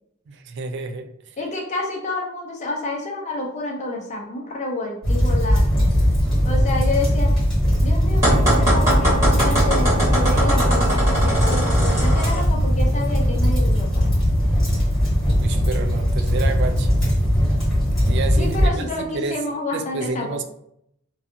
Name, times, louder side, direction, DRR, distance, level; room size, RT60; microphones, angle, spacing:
voice 1, 0.3-1.4 15.3-17.1 18.1-19.4 19.7-20.4, right 4 dB, 60° right, 7 dB, 0.3 m, -30 dB
voice 2, 1.4-5.9 6.4-7.3 7.8-14.2 18.4-20.4, left 2 dB, 35° left, 0 dB, 0.5 m, -29 dB
sound 1, 5.0-18.7, equal, 5° left, 1.3 m, -19 dB
sound 2, 8.2-12.4, right 1 dB, 15° right, 1.4 m, -22 dB
2.5 x 2.3 x 2.6 m, 0.74 s
head